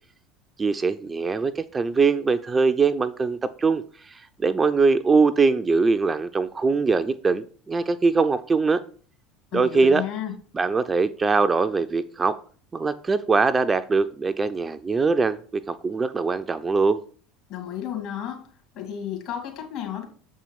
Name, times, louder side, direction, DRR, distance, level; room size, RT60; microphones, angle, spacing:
voice 1, 0.6-8.8 9.5-10.0 10.5-12.4 12.7-17.0, right 4 dB, 20° right, 10 dB, 0.4 m, -22 dB
voice 2, 9.5-10.3 17.5-18.5 18.7-20.0, left 10 dB, 55° left, 3 dB, 2.3 m, -32 dB
7.2 x 4.5 x 5.2 m, 0.44 s
figure-of-eight pair, 70°, 0 cm